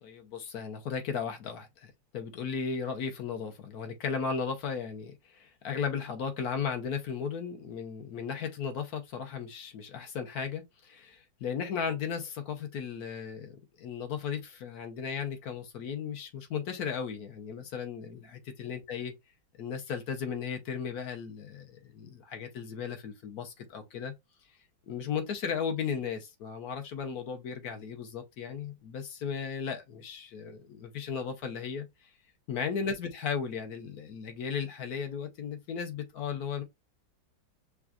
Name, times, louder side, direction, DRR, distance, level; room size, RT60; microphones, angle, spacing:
voice 1, 0.0-19.1 19.6-24.1 24.9-31.9 32.5-36.6, left 6 dB, 60° left, 1.2 m, -36 dB
6.0 x 2.4 x 2.4 m
omnidirectional pair, 2.1 m